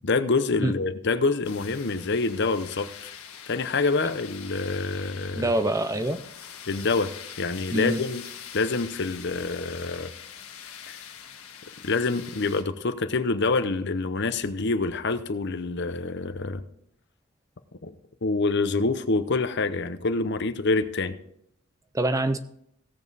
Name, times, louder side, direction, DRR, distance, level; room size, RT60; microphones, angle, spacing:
voice 1, 0.0-3.1 3.5-5.5 6.7-7.1 7.4-8.2 8.5-10.1 10.9-11.0 11.8-16.6 17.8-17.9 18.2-21.2, left 3 dB, 50° left, 11 dB, 0.7 m, -26 dB
sound 1, 1.4-12.6, left 8 dB, 75° left, 1.5 m, -43 dB
voice 2, 5.3-6.2 7.7-8.0 21.9-22.4, right 1 dB, 15° right, 10 dB, 0.5 m, -25 dB
16.5 x 7.2 x 4.1 m, 0.72 s
head